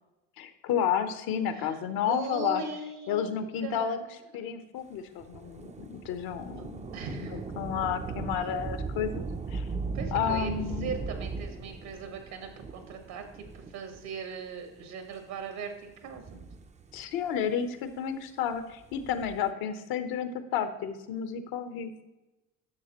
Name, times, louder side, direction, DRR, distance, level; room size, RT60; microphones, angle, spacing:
voice 1, 0.4-2.6 3.1-4.0 4.3-6.9 7.1-9.2 9.5-9.7 10.1-10.9 16.9-21.9, left 8 dB, 70° left, 10 dB, 0.9 m, -31 dB
voice 2, 1.5-3.3 3.6-4.2 6.5-6.6 6.9-7.4 9.9-10.5 10.8-16.5, right 5 dB, 75° right, 5 dB, 1.4 m, -39 dB
Thunder / Rain, 5.2-14.2 14.9-15.0 15.9-17.2 18.7-19.5, right 4 dB, 20° right, 0.4 m, -38 dB
11.0 x 6.4 x 3.0 m, 1.0 s
supercardioid pair, 80°, 38 cm